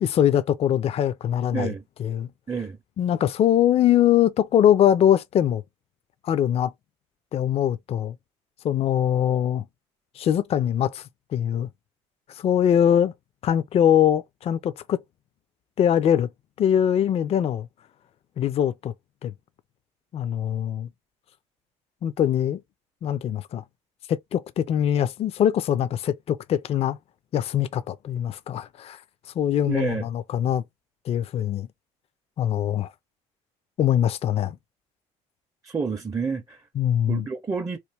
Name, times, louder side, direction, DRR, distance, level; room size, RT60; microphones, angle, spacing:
voice 1, 0.0-1.7 2.0-2.3 3.0-5.6 6.2-6.7 7.3-8.2 8.6-9.6 10.2-11.0 11.3-11.7 12.4-13.1 13.4-15.0 15.8-16.3 16.6-17.7 18.4-18.9 19.2-19.3 20.1-20.9 22.0-22.6 23.0-23.6 24.1-27.0 27.3-29.0 29.4-30.6 31.1-31.7 32.4-32.9 33.8-34.6 36.8-37.3, left 10 dB, 40° left, 0.4 m, -22 dB
voice 2, 1.5-1.8 2.5-2.8 29.7-30.1 35.6-36.6 37.1-37.8, right 5 dB, 20° right, 0.5 m, -29 dB
3.1 x 2.3 x 3.3 m
supercardioid pair, 75°, 15 cm